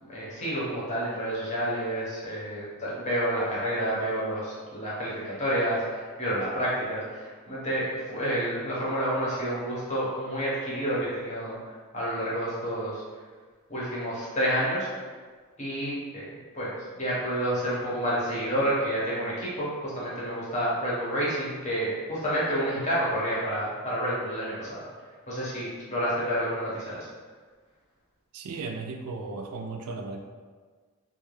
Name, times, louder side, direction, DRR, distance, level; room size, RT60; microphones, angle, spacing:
voice 1, 0.0-13.0 13.7-14.9 15.6-16.2 16.5-24.8 25.3-27.1, equal, 30° left, -8 dB, 0.8 m, -29 dB
voice 2, 28.3-30.2, right 3 dB, 85° right, 4 dB, 0.3 m, -35 dB
2.4 x 2.2 x 3.1 m, 1.5 s
head